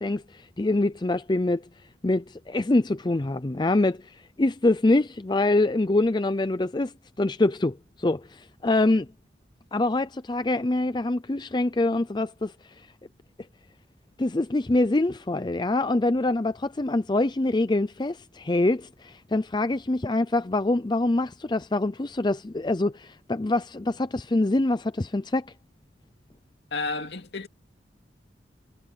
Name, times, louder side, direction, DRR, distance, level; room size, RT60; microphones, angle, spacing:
voice 1, 0.0-1.6 2.0-9.1 9.7-12.5 14.2-25.5, left 2 dB, 25° left, 0.5 m, -25 dB
voice 2, 26.7-27.5, left 3 dB, 65° left, 2.6 m, -31 dB
head